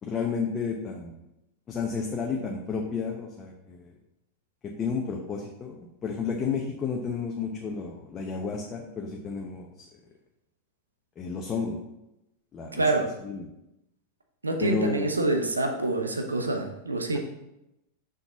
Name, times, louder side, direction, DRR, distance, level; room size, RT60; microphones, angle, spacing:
voice 1, 0.0-1.2 1.7-3.9 4.6-9.7 11.2-11.8 12.5-12.8 13.2-13.5 14.6-15.1, left 5 dB, 25° left, 1 dB, 0.8 m, -31 dB
voice 2, 12.7-13.1 14.4-17.2, right 2 dB, 80° right, 4 dB, 0.9 m, -26 dB
6.1 x 5.4 x 4.0 m, 0.89 s
figure-of-eight pair, 90°, 0 cm